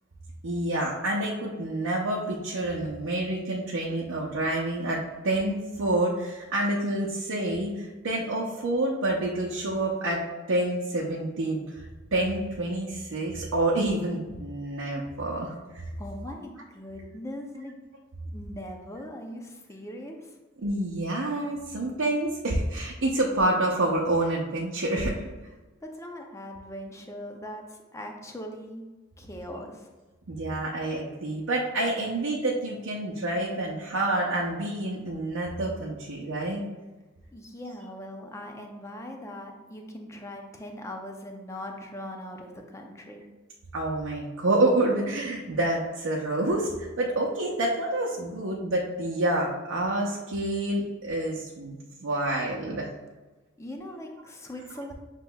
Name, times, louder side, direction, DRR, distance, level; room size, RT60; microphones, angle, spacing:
voice 1, 0.4-15.9 20.6-25.2 30.3-36.6 43.7-52.9, right 1 dB, 80° right, -3 dB, 0.6 m, -28 dB
voice 2, 16.0-17.8 18.3-20.4 25.8-28.8 29.2-29.9 37.3-43.2 53.6-54.9, left 1 dB, 15° left, 2 dB, 0.5 m, -40 dB
7.3 x 2.9 x 2.3 m, 1.2 s
head